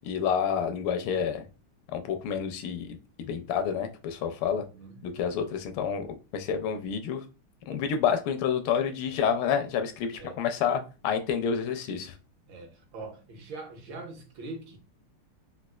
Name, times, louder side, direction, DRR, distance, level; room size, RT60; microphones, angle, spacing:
voice 1, 0.0-1.4 1.9-4.6 5.0-6.1 6.3-7.2 7.7-12.1, left 7 dB, 80° left, 1.4 m, -29 dB
voice 2, 4.5-5.1 9.1-9.2 10.1-10.4 10.7-10.8 12.5-14.8, right 3 dB, 70° right, 1.5 m, -43 dB
4.1 x 2.3 x 2.2 m
omnidirectional pair, 2.3 m